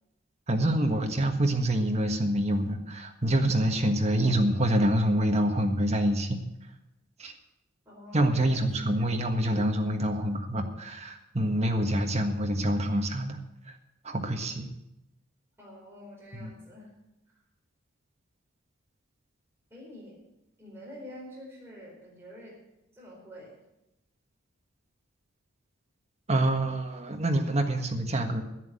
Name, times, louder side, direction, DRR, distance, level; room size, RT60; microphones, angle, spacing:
voice 1, 0.5-6.4 7.2-7.3 8.1-13.4 14.0-14.7 16.4-16.5 26.3-28.4, right 1 dB, 30° right, 4 dB, 1.5 m, -26 dB
voice 2, 7.8-9.0 15.6-16.9 19.7-20.2 20.6-22.6 22.9-23.6, left 1 dB, 10° right, -5 dB, 4.4 m, -47 dB
10.5 x 9.6 x 8.2 m, 0.90 s
head